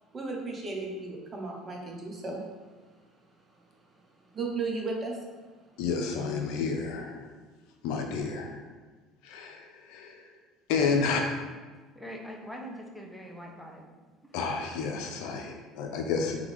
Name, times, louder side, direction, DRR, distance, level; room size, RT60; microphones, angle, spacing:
voice 1, 0.1-2.4 4.3-5.2, right 3 dB, 30° right, 0 dB, 0.9 m, -34 dB
voice 2, 5.8-7.3 7.8-8.7 9.2-10.3 10.7-11.2 14.3-16.4, left 5 dB, 75° left, 3 dB, 0.6 m, -30 dB
voice 3, 11.9-13.9 14.2-14.3 15.5-15.6, equal, ahead, -1 dB, 0.8 m, -43 dB
3.6 x 3.3 x 3.6 m, 1.4 s
supercardioid pair, 100°, 0 cm